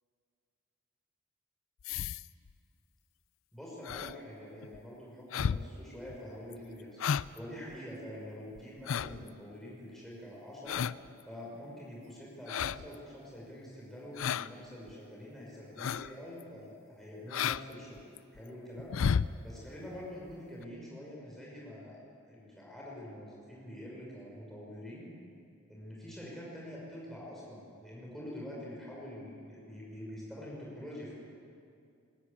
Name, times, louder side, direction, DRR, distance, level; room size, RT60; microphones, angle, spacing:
sound 1, 1.8-2.5 3.8-4.1 4.6-4.8 5.3-5.7 6.1-6.2 6.5-6.6 7.0-7.4 7.7-7.8 8.6-9.3 10.7-11.1 12.5-12.9 14.2-14.5 14.9-15.0 15.8-16.1 16.4-16.5 17.3-17.6 18.0-18.4 18.8-19.3 20.3-20.4 20.6-20.7, left 7 dB, 75° left, 0.4 m, -32 dB
voice 1, 3.5-10.8 11.2-22.0 22.2-25.1 25.7-31.1, equal, ahead, -5 dB, 6.0 m, -46 dB
21.0 x 13.0 x 9.8 m, 2.5 s
head